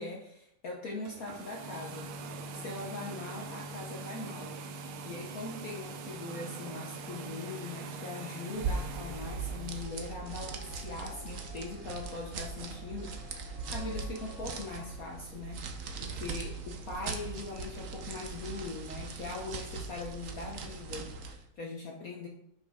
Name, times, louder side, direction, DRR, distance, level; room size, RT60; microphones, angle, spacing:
voice 1, 0.0-4.5 5.0-22.3, left 3 dB, 50° left, -1 dB, 1.2 m, -41 dB
sound 1, 1.0-9.9, right 3 dB, 80° right, 1.7 m, -43 dB
sound 2, 8.3-15.2, left 7 dB, 75° left, 1.5 m, -55 dB
sound 3, 8.5-21.4, right 4 dB, 55° right, 0.9 m, -40 dB
9.4 x 5.6 x 3.6 m, 0.75 s
omnidirectional pair, 2.3 m